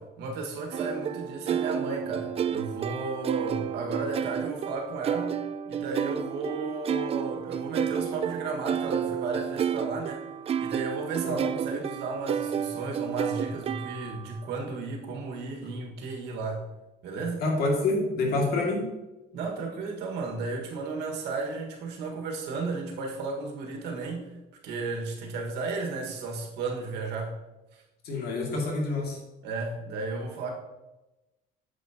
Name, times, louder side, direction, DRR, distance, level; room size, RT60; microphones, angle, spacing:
voice 1, 0.0-5.4 5.7-10.2 10.6-16.6 17.0-17.4 19.3-24.4 24.6-27.3 29.4-30.5, right 3 dB, 85° right, 1 dB, 1.7 m, -34 dB
sound 1, 0.7-14.3, right 8 dB, 35° right, 0.4 m, -31 dB
voice 2, 17.4-18.9 28.0-29.2, left 2 dB, 70° left, 0 dB, 2.3 m, -27 dB
8.4 x 7.5 x 2.9 m, 1.0 s
cardioid pair, 110°, 17 cm